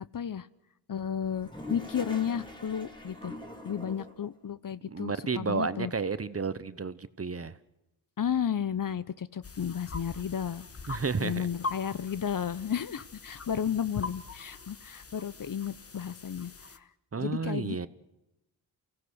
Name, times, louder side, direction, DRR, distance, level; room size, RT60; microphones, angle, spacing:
voice 1, 0.1-0.5 0.9-3.4 3.6-5.9 8.2-10.7 11.2-16.5 16.8-16.9 17.2-17.9, left 8 dB, 50° left, 17 dB, 0.7 m, -33 dB
Toilet flush, 1.2-4.3, left 1 dB, 10° left, 3.3 m, -43 dB
voice 2, 4.9-7.6 10.9-11.5 17.1-17.9, right 5 dB, 35° right, 14 dB, 0.9 m, -32 dB
sound 1, 9.4-16.8, left 3 dB, 35° left, 1.2 m, -43 dB
29.0 x 17.0 x 6.4 m, 0.93 s
wide cardioid pair, 100°, 42 cm